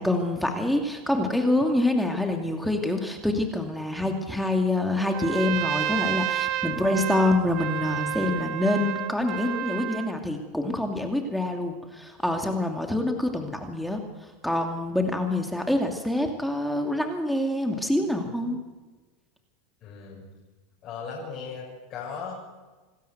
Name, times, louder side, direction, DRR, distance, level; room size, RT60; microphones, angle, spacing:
voice 1, 0.0-18.6, left 1 dB, ahead, 3 dB, 2.6 m, -26 dB
Trumpet, 5.1-10.1, right 12 dB, 50° right, 1.2 m, -30 dB
voice 2, 19.8-20.3 20.8-22.4, left 5 dB, 45° left, -4 dB, 6.8 m, -37 dB
27.0 x 13.0 x 8.1 m, 1.3 s
supercardioid pair, 115°, 0 cm